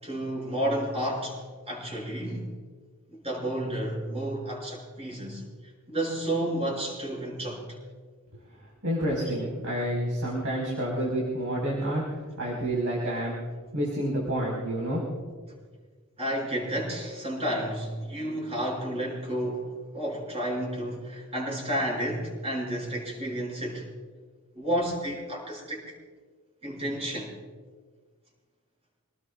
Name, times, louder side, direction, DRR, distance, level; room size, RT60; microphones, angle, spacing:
voice 1, 0.0-2.5 3.1-5.4 5.9-7.8 16.2-23.9 24.5-25.9 26.6-27.3, right 1 dB, 30° right, -3 dB, 6.2 m, -31 dB
voice 2, 8.8-13.4 13.7-15.0, right 1 dB, 70° right, -4 dB, 4.8 m, -29 dB
28.0 x 19.0 x 2.4 m, 1.5 s
head